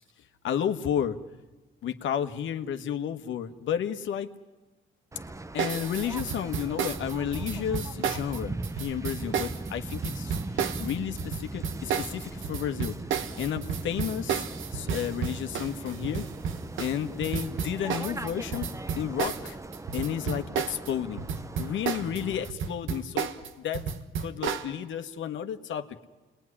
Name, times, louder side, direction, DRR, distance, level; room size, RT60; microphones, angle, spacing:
voice 1, 0.4-1.2 1.8-4.3 5.5-13.0 13.4-14.5 14.7-16.2 16.8-18.7 18.9-19.6 19.9-21.2 21.6-23.3 23.6-23.9 24.2-26.0, left 9 dB, 75° left, 8 dB, 1.5 m, -32 dB
Waves surf, 5.1-22.5, right 2 dB, 15° right, 0.8 m, -39 dB
sound 1, 5.6-20.9 21.2-24.7, right 7 dB, 75° right, 1.5 m, -32 dB
28.5 x 21.0 x 10.0 m, 1.2 s
cardioid pair, 90°, 20 cm